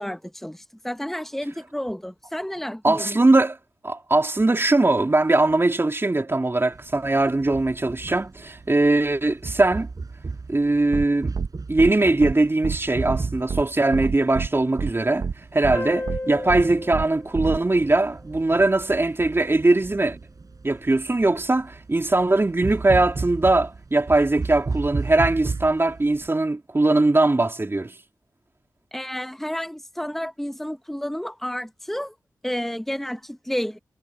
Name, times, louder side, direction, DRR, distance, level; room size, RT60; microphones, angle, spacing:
voice 1, 0.0-3.2 28.9-32.1 32.4-33.8, equal, 5° left, 1.2 m, -31 dB
voice 2, 2.8-3.6 3.8-9.9 10.5-11.3 11.7-15.3 15.5-20.2 20.6-27.9, right 2 dB, 30° right, 3.3 m, -21 dB
sound 1, 6.7-26.3, right 4 dB, 50° right, 4.6 m, -35 dB
sound 2, 10.9-11.1 11.3-11.5 11.8-11.9 12.2-12.3 12.6-12.8 13.1-13.2 13.5-13.6 13.9-14.5 14.8-14.9 15.2-15.3 15.6-15.8 16.1-16.2 16.5-16.6 16.9-17.1 17.3-17.6, right 5 dB, 70° right, 1.3 m, -27 dB
sound 3, 15.7-18.9, left 2 dB, 30° left, 1.7 m, -35 dB
cardioid pair, 55°, 8 cm